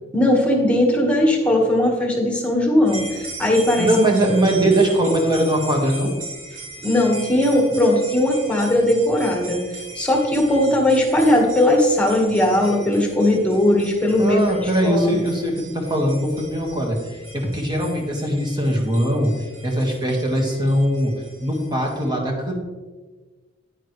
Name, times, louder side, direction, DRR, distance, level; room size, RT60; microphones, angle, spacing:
voice 1, 0.1-3.9 6.8-9.6 10.0-15.2, left 1 dB, 5° left, 0 dB, 1.7 m, -18 dB
sound 1, 2.8-22.1, right 2 dB, 75° right, 3.3 m, -39 dB
voice 2, 3.8-6.1 14.2-17.0 17.3-19.3 19.6-21.1 21.4-22.6, right 1 dB, 20° right, 0 dB, 1.8 m, -21 dB
9.7 x 9.7 x 3.3 m, 1.3 s
head